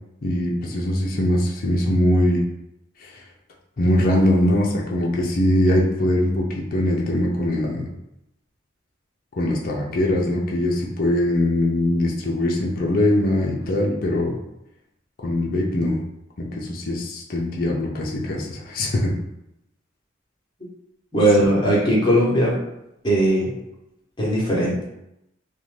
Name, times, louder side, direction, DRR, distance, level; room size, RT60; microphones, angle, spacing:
voice 1, 0.2-2.4 3.0-3.1 3.8-7.9 9.4-14.4 15.2-16.0 16.4-19.1, left 1 dB, 45° left, -2 dB, 0.4 m, -21 dB
voice 2, 21.1-22.6 23.0-23.5 24.2-24.8, right 1 dB, 20° left, -6 dB, 0.8 m, -18 dB
2.6 x 2.1 x 3.1 m, 0.83 s
head